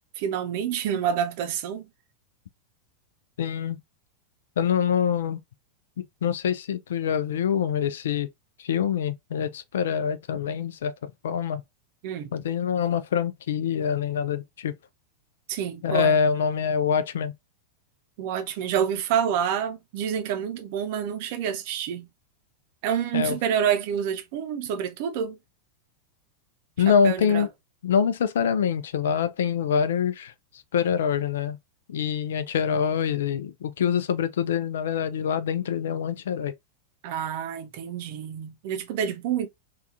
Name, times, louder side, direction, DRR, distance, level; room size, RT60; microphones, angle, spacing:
voice 1, 0.2-1.9 12.0-12.3 15.5-16.2 18.2-22.1 22.8-25.4 26.9-27.5 37.0-39.5, right 8 dB, 50° right, 0.6 m, -28 dB
voice 2, 3.4-3.8 4.6-5.4 6.0-8.3 8.6-10.9 11.2-11.6 12.3-14.7 15.8-17.3 23.1-23.4 26.8-27.5 27.8-30.3 30.7-31.6 31.9-36.5, left 7 dB, 60° left, 0.3 m, -25 dB
3.4 x 2.3 x 2.5 m
figure-of-eight pair, 90°, 0 cm